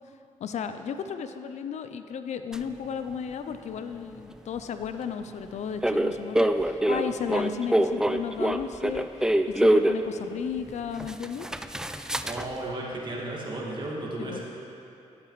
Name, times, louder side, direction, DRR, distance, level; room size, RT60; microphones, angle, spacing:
voice 1, 0.4-11.5 14.2-14.4, left 7 dB, 70° left, 9 dB, 0.4 m, -34 dB
sound 1, 2.5-2.6 5.8-10.0 10.7-10.8 11.0-12.5, right 1 dB, 5° right, 0.3 m, -24 dB
voice 2, 12.2-14.4, right 1 dB, 40° right, -4 dB, 2.0 m, -34 dB
11.5 x 8.0 x 3.1 m, 2.9 s
cardioid pair, 70°, 12 cm